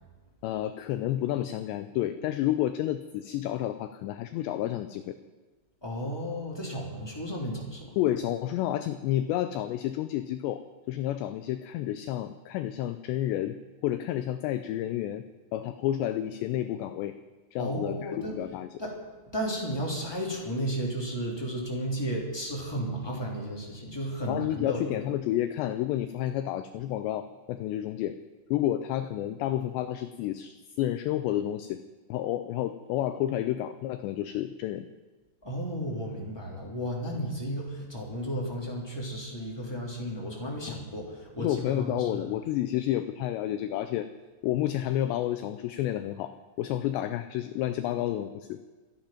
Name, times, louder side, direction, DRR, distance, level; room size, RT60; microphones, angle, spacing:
voice 1, 0.4-5.2 8.0-13.6 13.8-15.2 15.5-17.1 17.5-18.7 24.3-28.2 28.5-31.8 32.1-34.9 40.7-40.8 41.4-44.1 44.4-48.6, left 13 dB, 90° left, 10 dB, 2.5 m, -30 dB
voice 2, 5.8-7.9 17.6-18.3 18.8-19.0 19.3-25.0 35.4-42.2, equal, 10° left, -3 dB, 1.8 m, -33 dB
26.0 x 9.1 x 5.8 m, 1.3 s
omnidirectional pair, 5.7 m